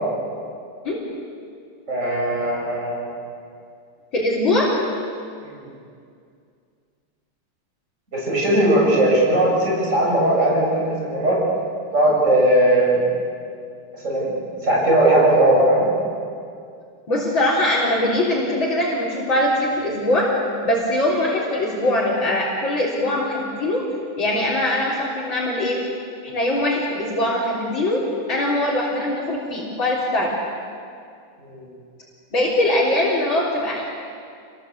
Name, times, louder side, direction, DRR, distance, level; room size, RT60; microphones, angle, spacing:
voice 1, 1.9-3.1 5.4-5.6 8.1-11.4 11.9-13.0 14.0-14.3 14.6-15.9 31.4-31.7, right 1 dB, 35° right, -4 dB, 8.0 m, -18 dB
voice 2, 4.1-4.7 17.1-20.3 20.6-23.8 24.2-25.8 26.2-28.0 28.3-30.3 32.3-33.8, left 1 dB, 65° left, -6 dB, 4.5 m, -22 dB
27.5 x 20.0 x 8.4 m, 2.3 s
omnidirectional pair, 2.3 m